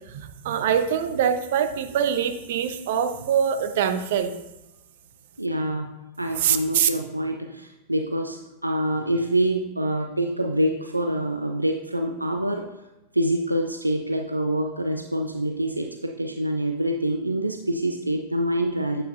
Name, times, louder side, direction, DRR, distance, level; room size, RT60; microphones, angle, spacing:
voice 1, 0.1-4.3 6.3-6.9, right 8 dB, 55° right, 9 dB, 0.8 m, -24 dB
voice 2, 5.4-12.7 13.1-19.0, right 1 dB, 85° right, 5 dB, 0.5 m, -26 dB
9.0 x 8.5 x 2.6 m, 0.96 s
figure-of-eight pair, 90°, 0 cm